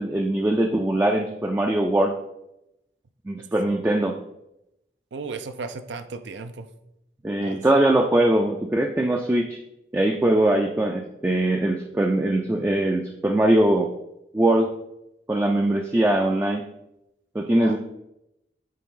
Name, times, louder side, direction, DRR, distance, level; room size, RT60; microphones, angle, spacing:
voice 1, 0.0-2.1 3.3-4.2 7.2-9.6 9.9-13.9 14.3-14.7 15.3-16.6 17.3-17.8, right 1 dB, 10° right, 3 dB, 0.3 m, -21 dB
voice 2, 5.1-6.7 7.4-7.6 17.6-17.8, right 4 dB, 80° right, 9 dB, 0.5 m, -35 dB
8.4 x 3.9 x 3.7 m, 0.87 s
head